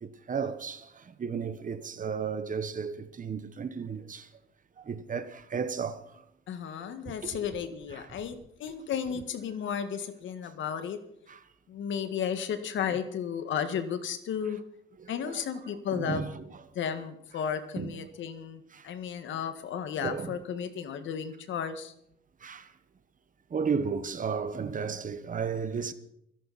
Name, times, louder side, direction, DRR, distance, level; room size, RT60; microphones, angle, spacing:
voice 1, 0.0-4.3 4.9-6.0 7.2-7.3 8.0-8.2 11.3-11.4 15.0-15.4 15.9-16.4 17.8-17.9 18.7-18.8 20.0-20.3 22.4-22.7 23.5-25.9, right 6 dB, 40° right, 1.3 m, -34 dB
voice 2, 6.5-11.0 11.7-14.6 15.1-16.3 16.8-21.9, left 8 dB, 75° left, 1.8 m, -34 dB
25.5 x 11.0 x 4.3 m
cardioid pair, 90°, 20 cm